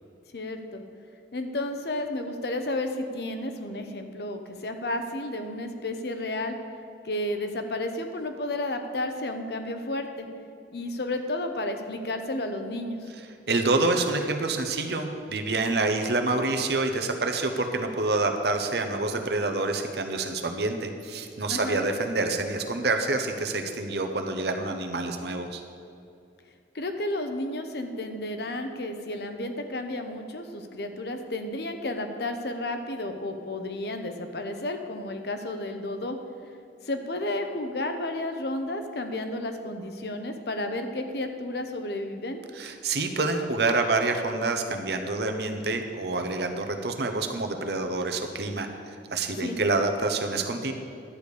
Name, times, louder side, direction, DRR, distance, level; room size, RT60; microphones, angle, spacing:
voice 1, 0.3-0.8 1.3-6.6 7.0-10.3 10.7-13.1 21.5-21.8 26.7-36.2 36.8-42.4 49.4-49.6, left 1 dB, 65° left, 6 dB, 0.9 m, -32 dB
voice 2, 13.5-25.6 42.6-48.7 49.1-50.7, right 3 dB, 65° right, 5 dB, 0.9 m, -27 dB
11.0 x 5.1 x 8.3 m, 2.4 s
head